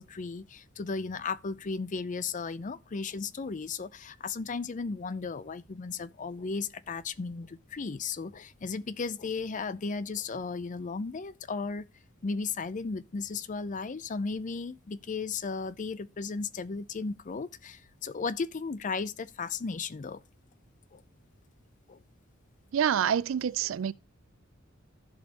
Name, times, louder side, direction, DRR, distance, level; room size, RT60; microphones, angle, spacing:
voice 1, 0.0-11.9 12.2-20.2 20.9-21.0 21.9-22.0, left 4 dB, 40° left, 0.5 m, -35 dB
voice 2, 22.7-23.9, right 8 dB, 75° right, 0.4 m, -27 dB
15.0 x 5.3 x 2.9 m
head